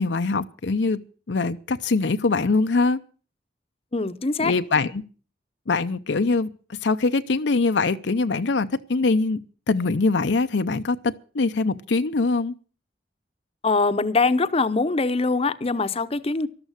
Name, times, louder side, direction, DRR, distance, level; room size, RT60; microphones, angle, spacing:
voice 1, 0.0-3.0 4.4-5.0 5.7-6.5 6.8-9.4 9.7-12.5, left 3 dB, 75° left, 0.7 m, -23 dB
voice 2, 3.9-4.5 13.6-16.5, left 3 dB, 35° left, 0.8 m, -23 dB
13.0 x 12.5 x 6.5 m
head